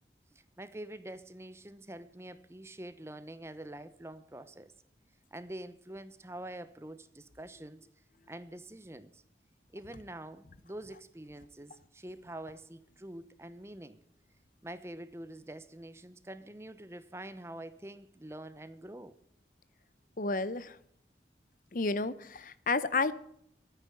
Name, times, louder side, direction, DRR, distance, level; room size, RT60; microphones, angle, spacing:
voice 1, 0.3-4.7 5.3-7.8 8.3-9.2 9.7-14.0 14.6-19.2, right 1 dB, 15° right, 13 dB, 0.8 m, -46 dB
voice 2, 20.2-20.8 21.7-23.2, left 3 dB, 50° left, 16 dB, 0.7 m, -31 dB
13.0 x 9.2 x 8.9 m, 0.69 s
head